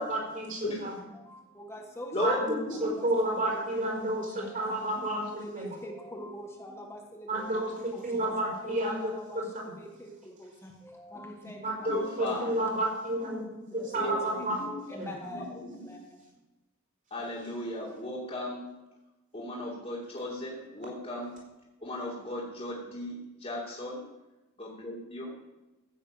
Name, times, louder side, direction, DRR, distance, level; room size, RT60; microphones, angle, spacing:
voice 1, 0.1-0.9 2.2-2.4 2.8-5.3 5.5-5.7 7.3-9.8 11.6-14.6 15.0-15.1, right 1 dB, 35° right, -2 dB, 5.0 m, -31 dB
voice 2, 0.6-2.4 2.7-3.8 4.1-11.9 12.2-12.8 13.7-16.4, equal, 10° left, 1 dB, 1.7 m, -45 dB
voice 3, 2.1-2.9 11.9-12.5 13.9-15.0 15.3-15.6 17.1-18.6 19.3-21.3 21.8-24.0 24.6-25.3, left 1 dB, 30° left, -7 dB, 2.8 m, -36 dB
15.5 x 7.3 x 8.6 m, 1.1 s
head